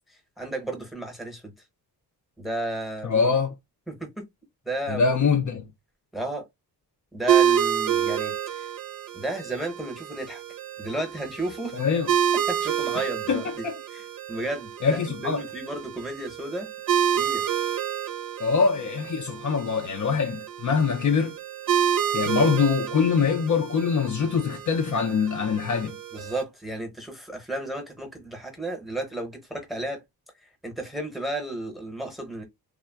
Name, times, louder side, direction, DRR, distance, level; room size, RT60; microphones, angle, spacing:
voice 1, 0.1-1.5 2.4-3.3 3.9-4.3 4.6-5.3 6.1-6.4 7.1-8.7 9.1-10.4 10.8-11.8 12.5-13.7 13.9-16.7 17.2-17.5 26.1-30.0 30.4-32.4, right 1 dB, ahead, 0.8 m, -33 dB
voice 2, 3.0-3.5 4.9-5.6 11.7-12.1 13.3-13.8 14.8-15.4 18.4-21.4 22.1-26.0, left 5 dB, 50° left, 0.5 m, -24 dB
sound 1, 7.3-26.4, right 9 dB, 60° right, 0.6 m, -28 dB
3.3 x 2.1 x 2.2 m
wide cardioid pair, 145°, 40 cm